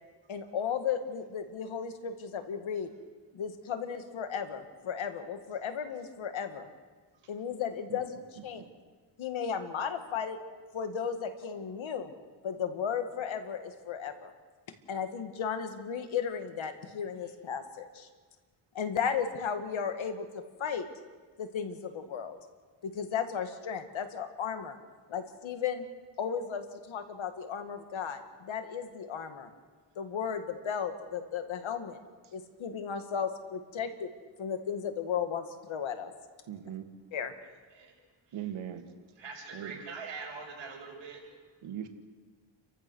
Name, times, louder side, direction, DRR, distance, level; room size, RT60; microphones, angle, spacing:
voice 1, 0.3-2.9 3.3-6.7 7.3-8.6 9.2-10.4 10.7-12.1 12.4-14.3 14.9-18.1 18.7-20.9 21.4-22.4 22.8-24.8 25.1-25.9 26.2-29.5 30.0-32.0 32.3-34.1 34.4-36.1 37.1-37.3, left 7 dB, 75° left, 7 dB, 2.2 m, -35 dB
voice 2, 8.4-8.7 32.2-32.3 36.5-36.9 38.3-38.9 39.5-39.9 41.6-41.9, right 10 dB, 90° right, 6 dB, 2.0 m, -40 dB
voice 3, 39.2-41.3, right 4 dB, 65° right, -1 dB, 6.6 m, -43 dB
29.5 x 15.0 x 6.4 m, 1.5 s
cardioid pair, 100°, 47 cm